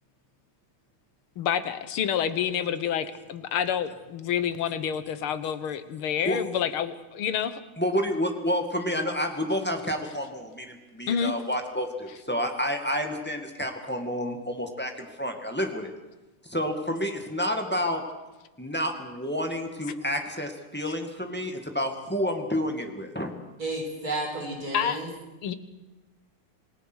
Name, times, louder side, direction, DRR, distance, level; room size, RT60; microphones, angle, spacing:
voice 1, 1.4-7.6 11.1-11.4 24.7-25.0 25.4-25.5, left 8 dB, 85° left, 12 dB, 2.0 m, -28 dB
voice 2, 7.8-15.9 16.4-18.0 18.6-23.3, equal, 5° left, 4 dB, 1.9 m, -29 dB
voice 3, 23.6-25.1, right 2 dB, 45° right, 1 dB, 5.2 m, -32 dB
27.5 x 18.5 x 6.3 m, 1.1 s
omnidirectional pair, 2.3 m